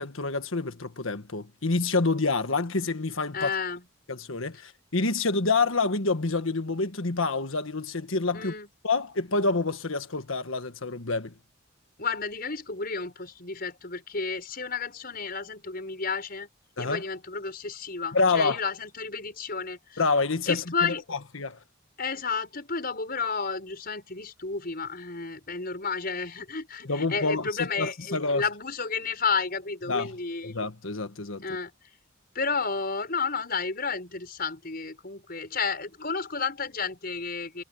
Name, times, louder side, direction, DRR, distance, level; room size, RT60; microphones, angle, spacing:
voice 1, 0.0-3.5 4.1-8.5 8.8-11.3 16.8-17.0 18.1-18.6 20.0-21.6 26.8-28.4 29.9-30.1 30.4-31.4, left 3 dB, 75° left, 1.5 m, -27 dB
voice 2, 3.3-3.8 8.3-8.7 12.0-16.5 16.8-20.0 20.5-21.1 22.0-30.6 31.4-31.7 32.3-37.6, left 5 dB, 45° left, 6.4 m, -31 dB
head